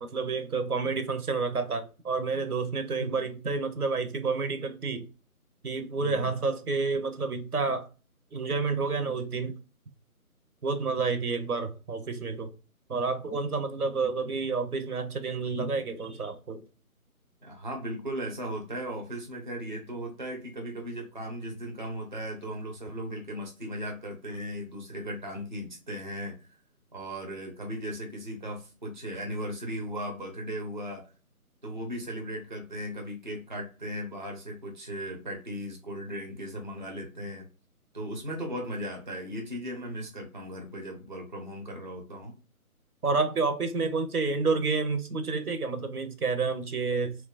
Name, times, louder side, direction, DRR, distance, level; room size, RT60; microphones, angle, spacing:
voice 1, 0.0-5.1 5.6-7.9 8.3-9.6 10.6-12.5 12.9-16.6 43.0-47.2, right 4 dB, 80° right, 0.7 m, -29 dB
voice 2, 17.4-26.3 26.9-31.0 31.6-37.5 37.9-42.4, equal, 35° right, 0.5 m, -37 dB
3.0 x 2.2 x 2.4 m
figure-of-eight pair, 155°, 44 cm